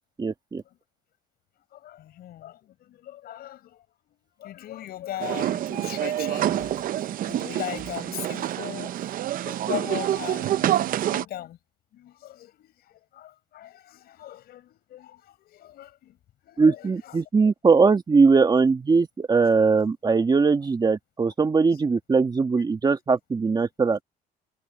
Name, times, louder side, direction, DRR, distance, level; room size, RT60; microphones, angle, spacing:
voice 1, 0.2-0.6 16.6-24.0, right 4 dB, 25° right, 1.6 m, -21 dB
voice 2, 1.7-3.8 4.3-11.6 11.9-16.2 16.4-17.2 17.4-17.5 19.3-19.8, left 13 dB, 65° left, 5.2 m, -39 dB
sound 1, 5.2-11.2, right 12 dB, 55° right, 0.6 m, -27 dB
cardioid pair, 110°, 17 cm